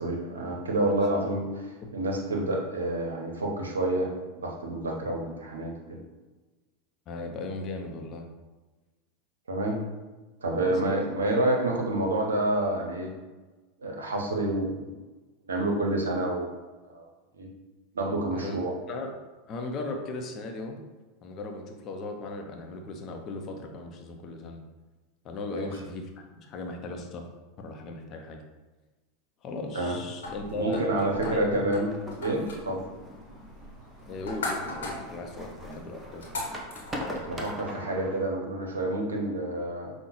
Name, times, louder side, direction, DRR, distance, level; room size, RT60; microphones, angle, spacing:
voice 1, 0.0-1.6 1.9-4.1 4.4-6.0 9.5-9.8 10.4-13.1 13.8-15.0 15.5-16.5 16.9-17.1 17.4-17.5 17.9-18.7 25.5-25.7 29.7-30.0 30.5-31.9 32.2-32.8 37.2-39.9, right 1 dB, 80° right, 1 dB, 0.6 m, -28 dB
voice 2, 0.8-1.2 7.1-8.3 10.5-11.0 18.3-18.6 18.9-19.1 19.5-20.8 21.2-24.6 25.2-27.2 27.6-28.4 29.4-31.7 34.1-36.3, left 2 dB, 40° left, 3 dB, 0.5 m, -37 dB
sound 1, 30.2-37.5, left 2 dB, 75° left, 0.9 m, -40 dB
sound 2, 31.9-38.2, equal, 15° right, 0.7 m, -41 dB
5.2 x 2.1 x 3.0 m, 1.2 s
figure-of-eight pair, 85°, 0 cm